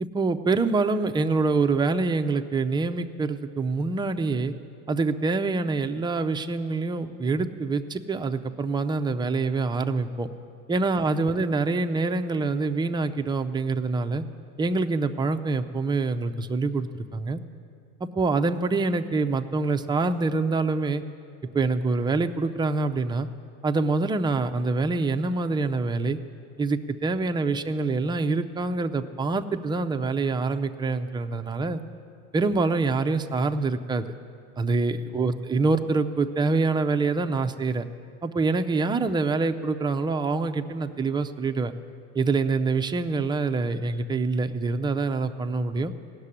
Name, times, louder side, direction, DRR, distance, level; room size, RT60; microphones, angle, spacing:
voice 1, 0.1-4.5 4.9-10.3 10.7-14.2 14.6-17.4 18.0-21.0 21.5-23.3 23.6-26.2 26.6-31.8 32.3-34.0 34.6-37.9 38.2-41.7 42.1-45.9, right 3 dB, 10° right, 6 dB, 0.4 m, -25 dB
16.0 x 6.7 x 9.8 m, 2.4 s
supercardioid pair, 120°, 36 cm